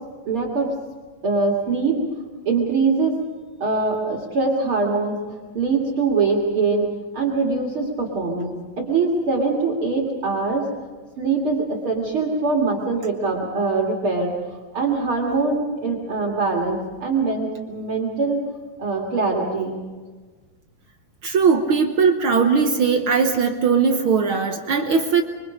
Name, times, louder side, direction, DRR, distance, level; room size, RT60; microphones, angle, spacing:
voice 1, 0.3-0.7 1.2-2.0 2.5-3.2 3.6-5.2 5.5-6.9 7.1-10.7 11.2-14.3 14.7-18.4 18.8-19.9, right 4 dB, 45° right, -1 dB, 2.8 m, -23 dB
voice 2, 21.2-25.2, right 5 dB, 65° right, 4 dB, 1.3 m, -19 dB
25.0 x 24.5 x 5.1 m, 1.4 s
omnidirectional pair, 3.8 m